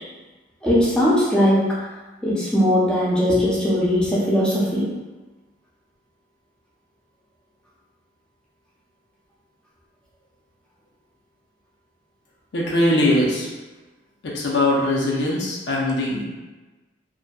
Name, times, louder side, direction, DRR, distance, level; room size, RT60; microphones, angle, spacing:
voice 1, 0.6-1.7 2.2-4.9, equal, 5° left, -8 dB, 0.5 m, -19 dB
voice 2, 12.5-13.5 14.2-16.2, left 1 dB, 65° left, -3 dB, 0.5 m, -21 dB
2.5 x 2.1 x 2.3 m, 1.2 s
head